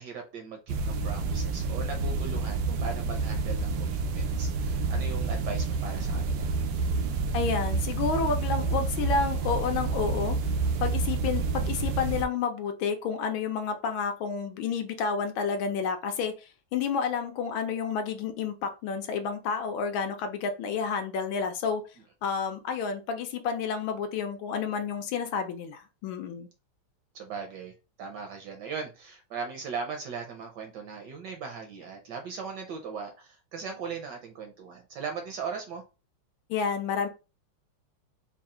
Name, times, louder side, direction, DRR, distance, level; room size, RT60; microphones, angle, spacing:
voice 1, 0.0-6.5 27.1-27.7 28.0-35.8, right 5 dB, 70° right, 1.1 m, -38 dB
sound 1, 0.7-12.2, right 4 dB, 90° right, 1.5 m, -29 dB
voice 2, 7.3-10.4 10.8-21.8 22.2-26.5 36.5-37.1, left 5 dB, 75° left, 1.3 m, -30 dB
4.1 x 2.3 x 3.7 m
omnidirectional pair, 2.4 m